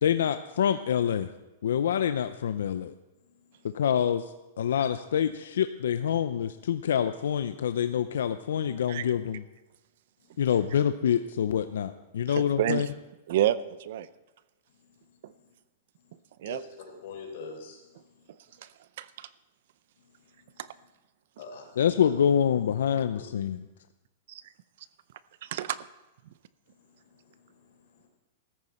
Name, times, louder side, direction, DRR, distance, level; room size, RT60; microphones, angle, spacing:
voice 1, 0.0-1.3 1.6-2.9 3.7-4.2 4.6-9.4 10.4-12.9 21.8-23.6, left 9 dB, 85° left, 10 dB, 0.5 m, -26 dB
voice 2, 12.3-12.9 13.3-14.1 15.2-15.3 16.4-16.6 18.6-18.7 19.0-19.3 24.3-24.4 25.4-25.8, right 12 dB, 55° right, 16 dB, 0.5 m, -29 dB
voice 3, 17.0-17.8 21.4-21.7 22.0-22.1 23.1-23.2 27.0-28.1, left 5 dB, 60° left, 2 dB, 4.0 m, -44 dB
14.0 x 13.5 x 4.3 m, 1.0 s
supercardioid pair, 165°, 0 cm